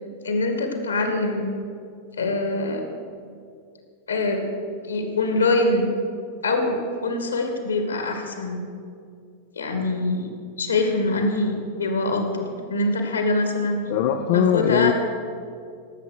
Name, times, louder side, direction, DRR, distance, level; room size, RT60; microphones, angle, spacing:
voice 1, 0.2-1.5 2.2-2.9 4.1-4.4 4.9-5.9 6.4-8.6 9.6-10.3 10.6-13.8 14.3-14.9, left 2 dB, 75° left, 5 dB, 2.2 m, -24 dB
voice 2, 13.9-14.9, left 10 dB, 50° left, 6 dB, 0.6 m, -20 dB
18.0 x 8.1 x 6.6 m, 2.3 s
figure-of-eight pair, 90°, 0 cm